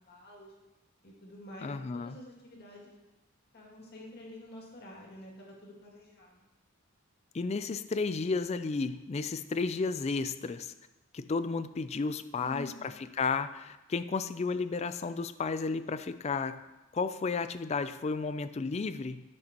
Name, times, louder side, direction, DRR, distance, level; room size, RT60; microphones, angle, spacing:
voice 1, 0.1-0.5 1.0-2.9 3.5-6.5 12.4-12.8, equal, 50° left, -2 dB, 2.3 m, -48 dB
voice 2, 1.6-2.2 7.3-10.7 11.1-16.6 16.9-19.2, left 4 dB, 30° left, 12 dB, 0.3 m, -33 dB
14.5 x 6.5 x 2.9 m, 1.0 s
head